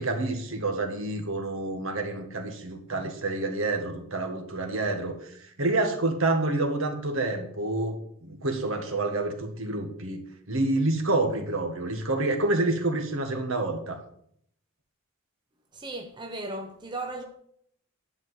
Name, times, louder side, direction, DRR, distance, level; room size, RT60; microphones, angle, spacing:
voice 1, 0.0-8.0 8.2-14.0, right 2 dB, 65° right, 1.8 m, -28 dB
voice 2, 15.7-17.2, right 2 dB, 20° right, 1.0 m, -36 dB
11.0 x 5.1 x 8.0 m
head